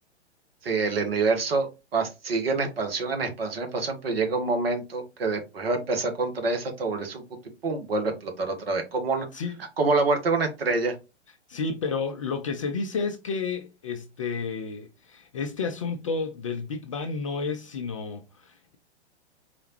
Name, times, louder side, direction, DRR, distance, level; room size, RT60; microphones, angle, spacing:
voice 1, 0.6-7.2 7.6-9.3 9.8-10.9, right 3 dB, 55° right, 1.3 m, -26 dB
voice 2, 11.5-18.8, left 4 dB, 30° left, 0.4 m, -31 dB
4.2 x 3.3 x 2.9 m
figure-of-eight pair, 110°, 35 cm